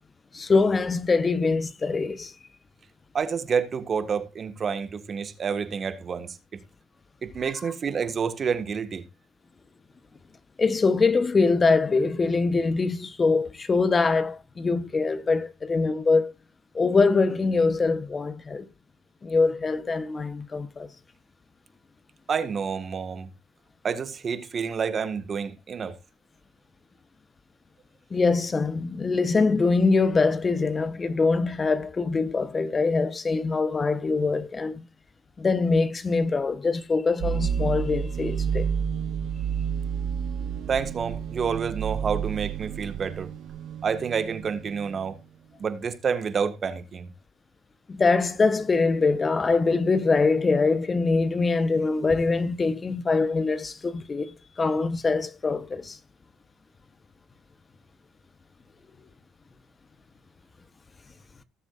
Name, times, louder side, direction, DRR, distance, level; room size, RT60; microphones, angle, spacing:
voice 1, 0.3-2.3 10.6-16.3 16.7-18.7 19.2-20.9 28.1-34.8 35.4-38.7 47.9-56.0, left 4 dB, 30° left, 1.0 m, -23 dB
voice 2, 3.1-6.4 7.2-9.1 22.3-23.3 23.8-26.0 40.7-43.3 43.8-45.2 45.6-47.1, right 6 dB, 45° right, 1.6 m, -29 dB
sound 1, 37.2-45.1, right 7 dB, 65° right, 0.5 m, -30 dB
18.5 x 7.3 x 2.5 m
supercardioid pair, 75°, 0 cm